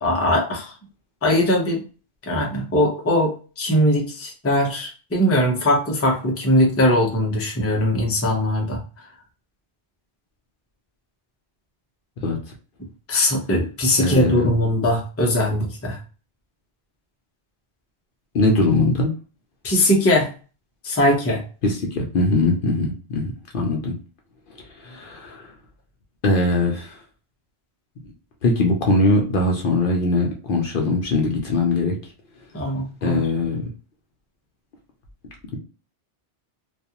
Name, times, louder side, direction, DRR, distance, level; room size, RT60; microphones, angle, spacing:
voice 1, 0.0-0.7 1.2-1.8 2.3-8.8 13.1-16.0 19.6-20.3 20.8-21.4 32.5-33.3, left 1 dB, 20° left, 0 dB, 0.5 m, -20 dB
voice 2, 14.0-14.5 18.3-19.1 21.6-23.9 24.8-25.5 26.2-27.0 28.4-32.0 33.0-33.6, left 2 dB, 60° left, 1 dB, 0.7 m, -21 dB
2.4 x 2.3 x 2.8 m, 0.35 s
omnidirectional pair, 1.1 m